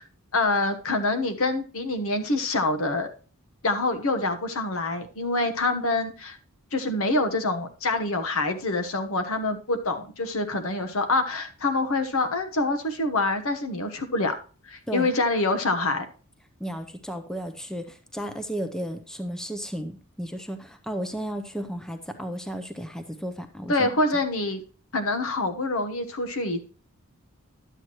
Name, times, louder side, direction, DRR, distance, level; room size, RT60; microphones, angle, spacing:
voice 1, 0.3-3.1 3.6-6.4 6.7-14.3 14.7-16.0 23.7-24.6 24.9-26.6, left 2 dB, 65° left, 7 dB, 1.1 m, -26 dB
voice 2, 16.6-24.0, equal, 5° left, 8 dB, 0.6 m, -34 dB
11.0 x 8.0 x 3.0 m, 0.38 s
head